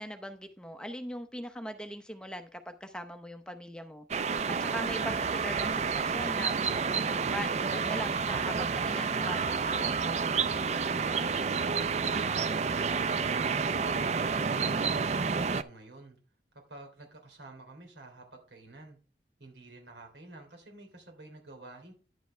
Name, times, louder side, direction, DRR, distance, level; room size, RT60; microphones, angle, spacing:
voice 1, 0.0-4.1 4.6-10.5, equal, 5° left, 0.7 m, -41 dB
sound 1, 4.1-15.6, right 5 dB, 40° right, 0.4 m, -29 dB
voice 2, 10.8-16.2 16.5-19.0 19.4-21.9, right 2 dB, 85° right, 3.2 m, -50 dB
10.5 x 7.0 x 3.2 m
head